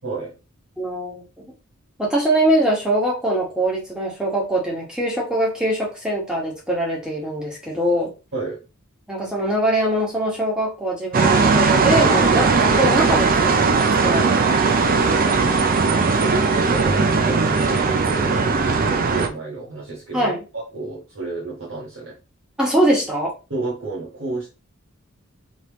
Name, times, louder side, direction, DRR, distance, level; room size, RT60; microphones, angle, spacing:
voice 1, 0.0-0.3 8.3-8.6 15.7-22.2 23.5-24.5, right 3 dB, 65° right, -6 dB, 1.4 m, -31 dB
voice 2, 0.8-1.4 2.0-8.1 9.1-15.2 20.1-20.4 22.6-23.3, right 1 dB, 5° right, -3 dB, 1.4 m, -23 dB
sound 1, 11.1-19.3, right 4 dB, 45° right, 0.5 m, -18 dB
4.2 x 3.4 x 3.0 m, 0.30 s
head